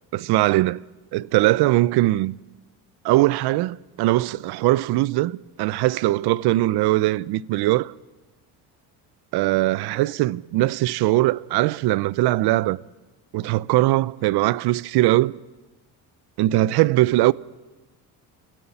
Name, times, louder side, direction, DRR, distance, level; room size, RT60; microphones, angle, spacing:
voice 1, 0.1-0.8 1.1-2.4 3.0-7.9 9.3-12.8 13.3-15.4 16.4-17.3, right 17 dB, 75° right, 0.6 m, -21 dB
29.5 x 15.5 x 7.1 m
cardioid pair, 115°, 40 cm